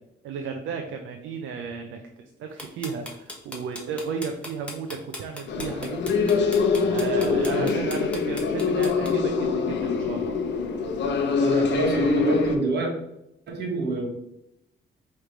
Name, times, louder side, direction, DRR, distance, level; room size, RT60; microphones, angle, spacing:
voice 1, 0.2-6.3 6.9-10.4, right 5 dB, 80° right, 4 dB, 0.5 m, -34 dB
sound 1, 2.6-9.1, left 1 dB, 5° left, 1.1 m, -38 dB
sound 2, 5.5-12.6, left 4 dB, 60° left, 0.7 m, -24 dB
voice 2, 11.3-12.9 13.5-14.1, right 2 dB, 60° right, 0 dB, 1.6 m, -27 dB
4.9 x 3.2 x 3.2 m, 0.82 s
cardioid pair, 90°, 20 cm